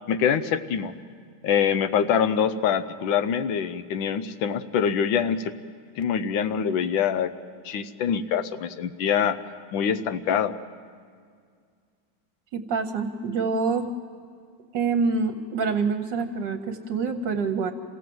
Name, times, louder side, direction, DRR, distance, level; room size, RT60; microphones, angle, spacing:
voice 1, 0.1-0.9 1.4-5.5 6.0-7.3 7.6-9.4 9.7-10.5, left 7 dB, 85° left, 12 dB, 1.5 m, -24 dB
voice 2, 12.5-13.9 14.7-17.7, right 4 dB, 70° right, 5 dB, 1.5 m, -26 dB
26.5 x 16.5 x 7.7 m, 2.1 s
omnidirectional pair, 2.1 m